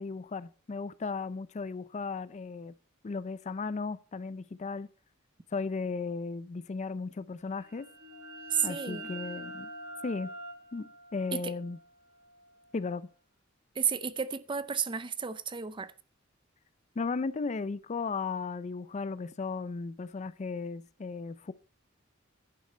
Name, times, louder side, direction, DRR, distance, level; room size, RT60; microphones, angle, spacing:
voice 1, 0.0-2.7 3.0-4.9 5.5-7.9 8.6-9.7 10.0-10.3 10.7-11.8 12.7-13.1 17.0-21.5, left 4 dB, 35° left, 0.4 m, -35 dB
sound 1, 7.5-13.0, right 1 dB, 75° right, 3.5 m, -45 dB
voice 2, 8.5-9.1 11.3-11.5 13.7-15.9, right 7 dB, 25° right, 0.5 m, -32 dB
10.5 x 8.1 x 4.4 m
head